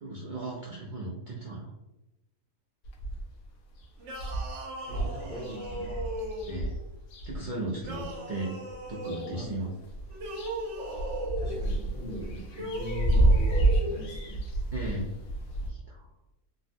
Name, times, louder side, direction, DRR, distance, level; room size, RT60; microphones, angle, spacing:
voice 1, 0.0-1.7 5.0-5.1 6.5-6.7 7.2-8.5 8.9-9.7 11.4-11.5 14.7-15.1 15.7-16.0, right 2 dB, 90° right, -5 dB, 0.4 m, -36 dB
sound 1, 2.8-3.4 3.8-3.9 4.1-8.2 8.7-9.5 9.8-15.7, right 1 dB, 75° left, 1.0 m, -29 dB
sound 2, 4.0-6.7 7.8-9.3 10.1-11.6 12.5-14.0, equal, 60° right, 0.9 m, -37 dB
voice 2, 4.8-6.0 9.3-9.6 11.4-14.4, right 2 dB, 45° left, -4 dB, 0.8 m, -41 dB
3.4 x 2.1 x 2.5 m, 0.99 s
omnidirectional pair, 1.5 m